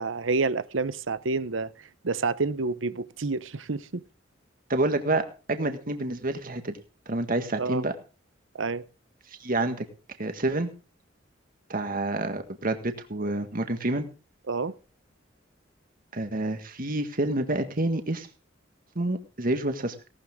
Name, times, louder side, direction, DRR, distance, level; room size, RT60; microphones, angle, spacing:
voice 1, 0.0-1.7 2.0-4.0 7.6-7.8 8.5-8.8 14.5-14.7, right 3 dB, 80° right, 0.9 m, -28 dB
voice 2, 4.7-5.2 5.5-6.8 7.1-7.9 9.4-9.9 10.2-10.7 11.7-14.1 16.1-18.3 19.0-20.0, right 2 dB, 45° right, 1.8 m, -28 dB
17.5 x 12.5 x 3.7 m
head